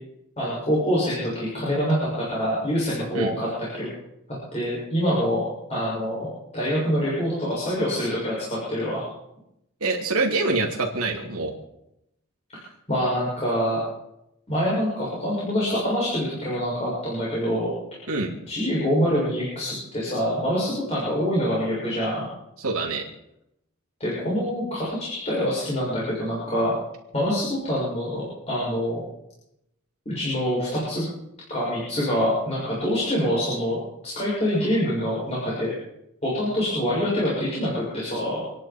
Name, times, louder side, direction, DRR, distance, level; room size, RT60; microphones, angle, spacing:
voice 1, 0.4-3.9 4.5-5.4 5.7-6.3 6.5-8.3 8.7-9.0 12.9-13.8 14.5-17.7 18.5-22.3 24.0-26.7 27.1-29.0 30.1-31.1 31.5-35.7 36.2-38.4, equal, 30° left, -7 dB, 6.9 m, -25 dB
voice 2, 9.8-11.5 18.1-18.3 22.6-23.0, right 3 dB, 75° right, -1 dB, 3.0 m, -25 dB
28.5 x 10.5 x 4.6 m, 0.83 s
head